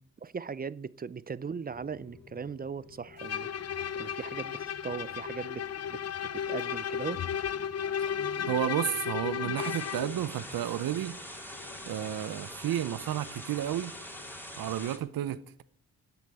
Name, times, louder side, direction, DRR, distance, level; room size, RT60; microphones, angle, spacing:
voice 1, 0.2-3.5 4.0-6.0 6.3-7.2, right 6 dB, 25° right, 0.5 m, -38 dB
Rain, 1.6-14.8, left 6 dB, 65° left, 4.6 m, -54 dB
Bowed string instrument, 3.2-10.1, left 8 dB, 45° left, 0.7 m, -34 dB
voice 2, 8.5-11.2 11.9-13.9 14.6-15.6, right 12 dB, 70° right, 0.7 m, -32 dB
sound 1, 9.6-15.0, equal, 5° left, 3.2 m, -44 dB
12.0 x 8.2 x 7.7 m
cardioid pair, 75°, 36 cm